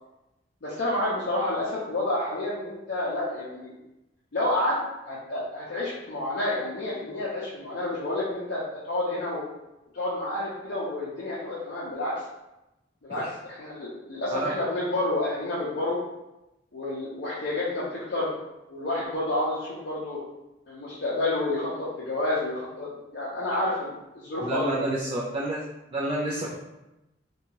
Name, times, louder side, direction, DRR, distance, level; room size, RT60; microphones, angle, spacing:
voice 1, 0.6-3.7 4.3-4.8 5.0-9.4 9.9-12.2 13.0-16.0 16.7-18.3 18.7-20.2 20.7-24.8, left 1 dB, 60° left, -8 dB, 0.6 m, -29 dB
voice 2, 24.4-26.5, right 1 dB, 30° right, -5 dB, 0.3 m, -29 dB
2.7 x 2.3 x 2.8 m, 0.96 s
head